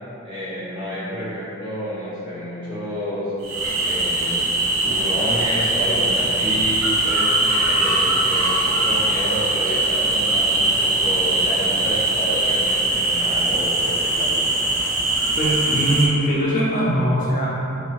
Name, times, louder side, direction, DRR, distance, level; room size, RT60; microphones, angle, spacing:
voice 1, 0.2-3.3 3.8-4.6 4.8-14.4, equal, 20° right, -11 dB, 0.9 m, -30 dB
sound 1, 3.4-16.1, right 2 dB, 75° right, 0.5 m, -21 dB
voice 2, 15.4-17.5, equal, 40° left, -7 dB, 0.4 m, -21 dB
2.6 x 2.6 x 3.0 m, 2.8 s
head